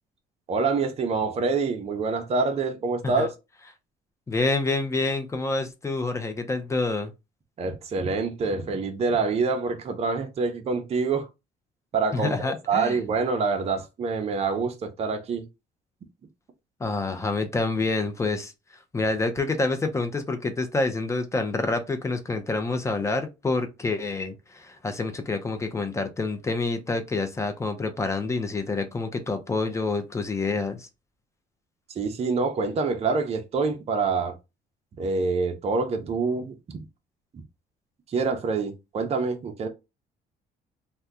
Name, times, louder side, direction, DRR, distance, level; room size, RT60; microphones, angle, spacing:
voice 1, 0.5-3.3 7.6-11.3 11.9-12.3 12.7-15.5 31.9-34.3 35.0-36.8 38.1-39.7, right 4 dB, 40° right, 0.6 m, -26 dB
voice 2, 4.3-7.1 12.1-13.0 16.8-18.5 18.9-30.9, left 3 dB, 15° left, 0.6 m, -27 dB
2.8 x 2.2 x 3.5 m
cardioid pair, 110°, 17 cm